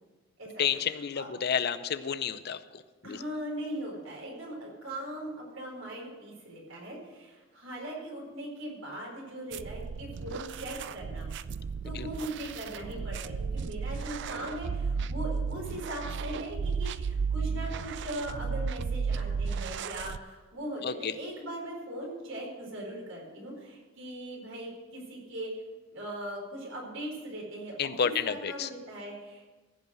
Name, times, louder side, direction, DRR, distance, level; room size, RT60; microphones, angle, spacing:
voice 1, 0.6-3.2 11.9-12.1 20.8-21.1 27.8-28.7, left 7 dB, 55° left, 13 dB, 0.5 m, -31 dB
voice 2, 3.0-11.3 11.8-25.5 25.9-29.4, right 1 dB, 90° right, -2 dB, 4.4 m, -40 dB
sound 1, 9.5-20.2, right 5 dB, 60° right, 0.4 m, -34 dB
15.0 x 5.5 x 7.6 m, 1.3 s
head